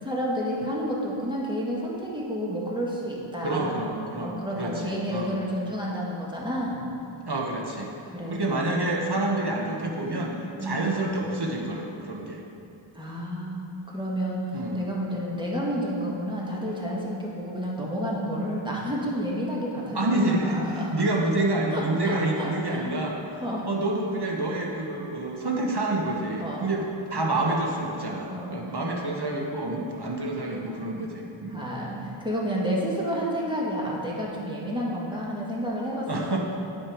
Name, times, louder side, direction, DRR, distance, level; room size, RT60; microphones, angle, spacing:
voice 1, 0.0-3.8 4.2-6.8 8.1-8.6 10.5-10.9 12.9-14.5 14.7-20.9 21.7-22.8 23.4-23.6 26.4-26.7 28.3-28.6 31.5-36.4, equal, 10° right, -5 dB, 1.7 m, -30 dB
voice 2, 3.4-5.3 7.3-7.9 8.3-12.4 14.5-14.8 19.9-31.7 36.1-36.4, right 2 dB, 55° right, -1 dB, 1.2 m, -28 dB
8.8 x 5.2 x 5.0 m, 2.7 s
wide cardioid pair, 45°, 48 cm